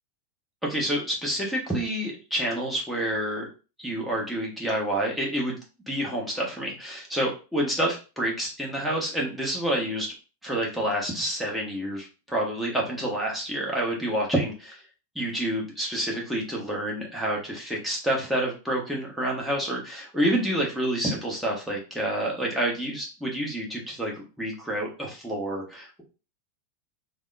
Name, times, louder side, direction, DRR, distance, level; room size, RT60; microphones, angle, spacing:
voice 1, 0.6-3.5 3.8-5.6 5.9-10.1 10.4-14.8 15.1-26.0, right 1 dB, ahead, -3 dB, 1.0 m, -28 dB
3.4 x 2.1 x 2.4 m, 0.33 s
figure-of-eight pair, 90°, 0 cm